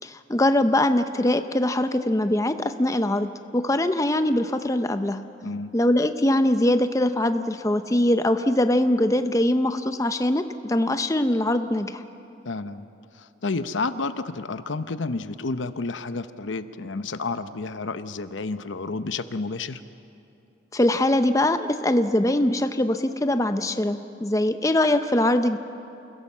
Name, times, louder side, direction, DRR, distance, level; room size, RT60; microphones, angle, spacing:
voice 1, 0.0-5.2 5.7-12.0 20.7-25.6, left 1 dB, 15° left, 9 dB, 0.6 m, -22 dB
voice 2, 12.4-12.9 13.1-19.8, left 3 dB, 80° left, 11 dB, 0.8 m, -30 dB
28.5 x 17.0 x 7.3 m, 2.7 s
head